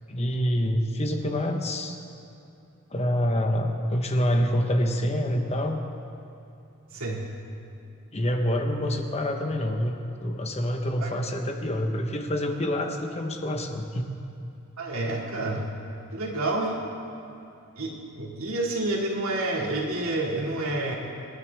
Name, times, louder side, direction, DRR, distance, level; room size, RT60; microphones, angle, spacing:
voice 1, 0.1-2.0 2.9-5.8 8.1-14.1, equal, 30° left, 4 dB, 1.1 m, -26 dB
voice 2, 6.9-7.3 11.0-11.1 14.8-15.7 16.1-16.8 17.8-21.0, right 2 dB, 80° right, -1 dB, 2.3 m, -29 dB
26.5 x 10.5 x 3.5 m, 2.7 s
head